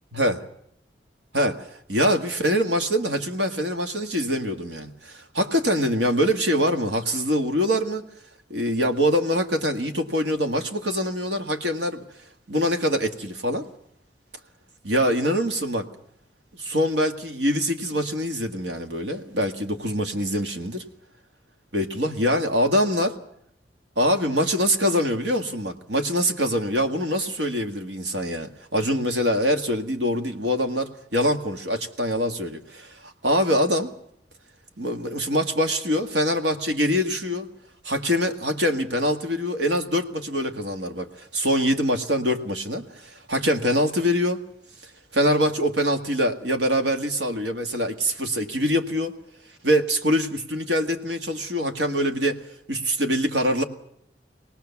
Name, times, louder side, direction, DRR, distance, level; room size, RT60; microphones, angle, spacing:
voice 1, 1.3-8.0 8.5-12.0 12.5-13.7 14.8-15.9 16.5-20.8 21.7-23.2 24.0-33.9 34.8-37.5 37.8-44.4 45.1-49.2 49.6-52.4 52.7-53.6, equal, 85° right, 5 dB, 1.9 m, -24 dB
24.5 x 18.5 x 7.1 m, 0.73 s
head